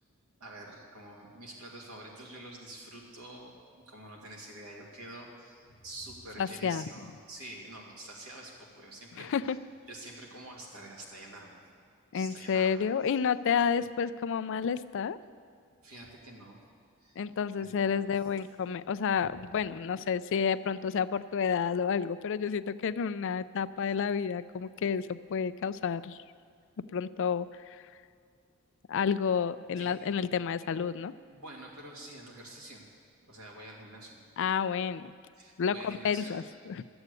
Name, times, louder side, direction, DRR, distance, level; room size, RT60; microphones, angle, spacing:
voice 1, 0.4-3.6 3.9-9.3 9.9-11.6 12.1-12.8 15.8-16.6 17.0-17.2 17.6-18.1 19.2-19.3 29.8-29.9 31.3-32.8 33.3-34.2 35.4-36.4, right 1 dB, 85° right, -1 dB, 2.5 m, -47 dB
voice 2, 6.4-6.9 9.2-9.6 12.1-15.2 17.2-26.2 26.9-27.8 28.9-31.1 34.4-35.1 35.6-36.8, left 6 dB, 60° left, 15 dB, 0.4 m, -30 dB
12.0 x 8.0 x 8.3 m, 2.4 s
head